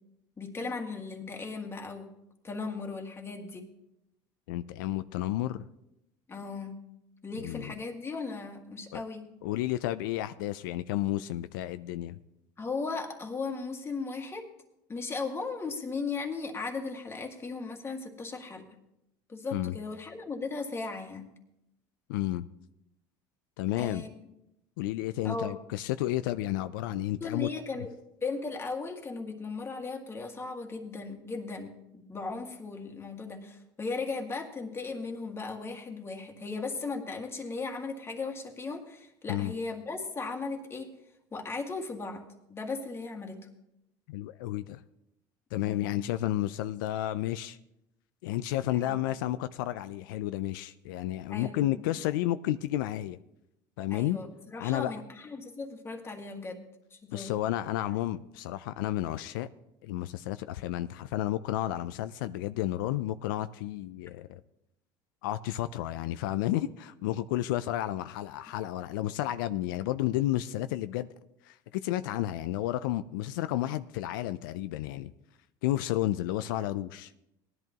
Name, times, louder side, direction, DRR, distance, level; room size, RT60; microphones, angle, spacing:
voice 1, 0.4-2.1 2.4-3.6 6.3-6.8 7.2-9.2 12.6-14.5 14.9-18.7 19.3-21.3 23.8-24.2 25.2-25.6 27.2-27.9 28.2-40.9 41.3-42.2 42.5-43.4 45.6-45.9 48.7-49.0 51.3-51.8 53.9-56.6 56.9-57.3, left 4 dB, 25° left, 3 dB, 1.8 m, -37 dB
voice 2, 4.5-5.6 7.4-7.8 8.9-9.0 9.4-12.2 19.5-19.7 22.1-22.4 23.6-24.0 24.8-27.5 39.3-39.5 44.1-44.8 45.5-47.6 48.2-53.2 53.8-54.2 54.6-54.9 57.1-59.5 59.8-64.4 65.2-71.1 71.4-75.1 75.6-77.1, left 14 dB, 90° left, 12 dB, 0.4 m, -31 dB
18.5 x 11.0 x 3.0 m, 0.86 s
supercardioid pair, 105°, 11 cm